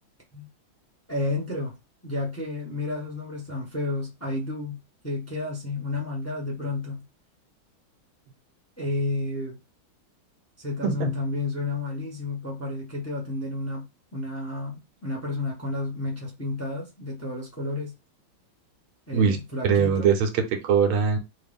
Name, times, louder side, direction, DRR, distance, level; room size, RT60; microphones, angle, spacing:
voice 1, 1.1-1.7 2.0-7.0 8.8-9.6 10.6-13.9 14.1-17.9 19.1-20.1, left 2 dB, 10° left, 0.8 m, -31 dB
voice 2, 19.6-21.2, right 6 dB, 90° right, 1.7 m, -22 dB
3.8 x 2.7 x 3.4 m
omnidirectional pair, 2.2 m